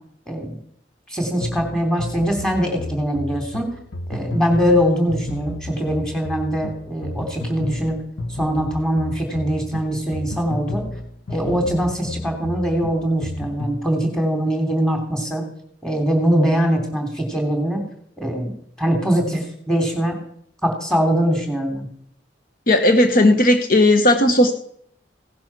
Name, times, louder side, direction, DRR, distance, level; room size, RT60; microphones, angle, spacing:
voice 1, 1.1-3.7 4.1-8.0 8.4-10.8 11.3-15.4 15.8-17.9 18.2-18.5 18.8-20.2 20.6-21.9, equal, 5° left, 3 dB, 3.2 m, -22 dB
sound 1, 1.4-13.9, left 1 dB, 85° left, 1.0 m, -32 dB
voice 2, 22.7-24.5, left 1 dB, 50° left, 6 dB, 1.1 m, -15 dB
17.0 x 10.5 x 6.1 m, 0.68 s
head